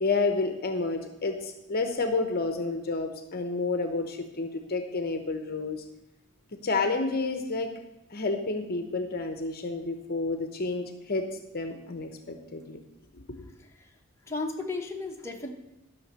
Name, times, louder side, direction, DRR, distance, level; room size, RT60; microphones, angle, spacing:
voice 1, 0.0-5.8 6.5-7.7 8.1-11.3 11.5-12.8 13.4-13.5, left 3 dB, 45° left, 7 dB, 0.8 m, -30 dB
voice 2, 13.6-13.9 14.3-15.5, left 3 dB, 15° left, 0 dB, 1.1 m, -35 dB
12.0 x 5.9 x 6.8 m, 0.95 s
head